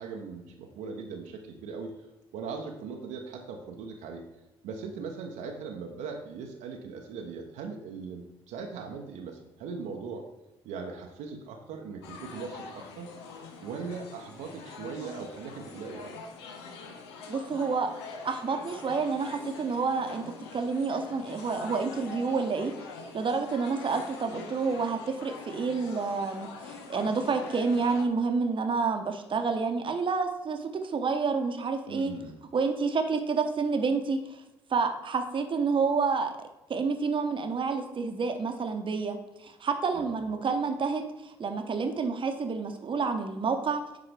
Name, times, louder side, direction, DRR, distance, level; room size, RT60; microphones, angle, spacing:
voice 1, 0.0-1.9 2.3-4.2 4.6-10.2 10.6-13.1 13.6-16.1 31.9-32.4 39.9-40.1, right 5 dB, 65° right, 2 dB, 0.8 m, -39 dB
sound 1, 12.0-28.0, left 4 dB, 80° left, 0.7 m, -44 dB
voice 2, 17.3-17.9 18.2-20.2 20.5-22.7 23.1-32.1 32.5-34.4 34.7-43.8, right 4 dB, 40° right, 5 dB, 0.9 m, -29 dB
10.0 x 3.8 x 3.3 m, 0.98 s
hypercardioid pair, 45°, 14 cm